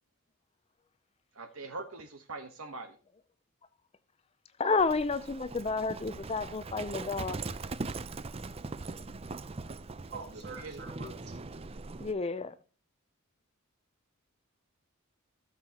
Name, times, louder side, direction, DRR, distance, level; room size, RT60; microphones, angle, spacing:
voice 1, 1.3-3.0 10.6-10.8, right 3 dB, 70° right, 1.2 m, -42 dB
voice 2, 4.6-7.4 12.0-12.5, left 4 dB, 25° left, 0.5 m, -30 dB
Livestock farm animals working animals, 4.8-12.1, right 3 dB, 25° right, 0.5 m, -41 dB
voice 3, 10.1-11.3, right 3 dB, 50° right, 3.4 m, -43 dB
14.0 x 7.3 x 2.9 m
head